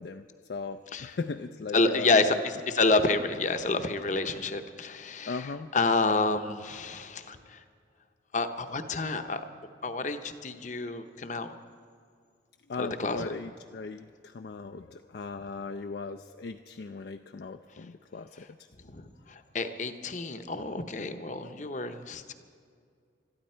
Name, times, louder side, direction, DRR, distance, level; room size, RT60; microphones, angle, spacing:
voice 1, 0.0-2.4 5.3-5.7 12.7-18.5, left 4 dB, 55° left, 7 dB, 0.4 m, -38 dB
voice 2, 1.7-5.4 5.7-7.4 8.3-9.4 9.8-11.5 12.8-13.3 18.9-19.0 19.5-22.3, left 3 dB, 40° left, 8 dB, 0.8 m, -28 dB
22.0 x 13.0 x 4.4 m, 2.2 s
head